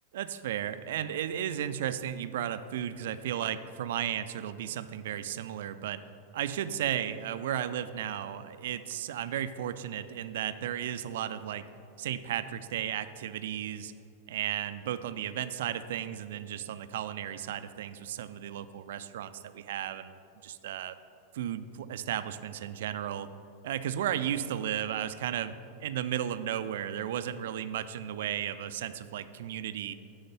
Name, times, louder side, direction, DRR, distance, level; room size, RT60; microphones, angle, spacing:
voice 1, 0.1-6.0 6.3-11.7 12.0-13.9 14.3-20.2 20.4-21.0 21.3-23.3 23.6-25.5 25.8-29.9, right 10 dB, 55° right, 12 dB, 0.3 m, -34 dB
9.0 x 3.6 x 6.7 m, 2.5 s
figure-of-eight pair, 90°, 0 cm